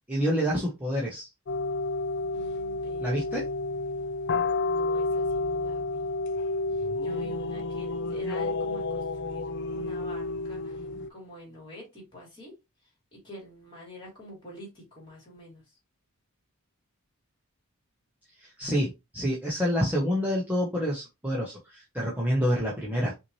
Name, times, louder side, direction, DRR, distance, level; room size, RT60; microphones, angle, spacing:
voice 1, 0.1-1.3 3.0-3.4 18.6-23.1, equal, 5° right, -5 dB, 1.0 m, -27 dB
sound 1, 1.5-11.1, left 3 dB, 50° left, 0.5 m, -30 dB
voice 2, 2.3-3.3 4.6-6.1 7.0-10.8 11.1-12.5 13.1-15.6 22.4-22.5, equal, 20° left, -2 dB, 2.9 m, -46 dB
5.8 x 2.8 x 3.1 m, 0.24 s
head